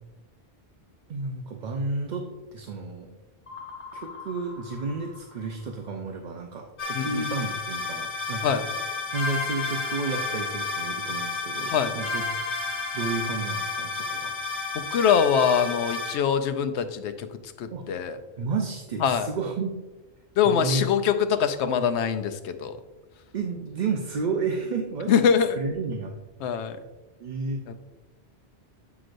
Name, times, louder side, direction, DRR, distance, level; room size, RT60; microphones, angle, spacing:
voice 1, 1.1-3.1 3.9-8.6 9.1-12.2 12.9-14.3 17.7-17.8 18.4-19.7 20.4-20.8 23.3-25.1 25.5-26.2 27.2-27.6, right 4 dB, 50° right, 3 dB, 0.6 m, -31 dB
sound 1, 3.5-6.0, left 4 dB, 55° left, 1.2 m, -44 dB
sound 2, 6.8-16.1, left 3 dB, 75° left, 1.5 m, -31 dB
voice 2, 14.7-17.3 17.6-18.2 19.0-19.3 20.4-22.8 25.1-25.6 26.4-26.8 27.7-27.8, left 7 dB, 90° left, 9 dB, 0.9 m, -23 dB
7.6 x 6.0 x 2.5 m, 1.1 s
omnidirectional pair, 1.1 m